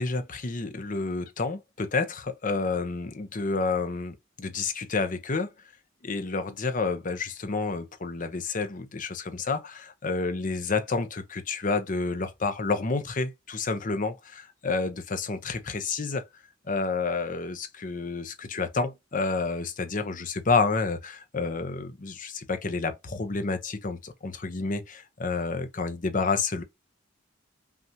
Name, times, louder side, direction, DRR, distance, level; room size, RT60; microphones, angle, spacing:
voice 1, 0.0-5.5 6.0-16.2 16.7-26.6, left 4 dB, 40° left, 0.7 m, -29 dB
5.6 x 2.6 x 2.8 m
head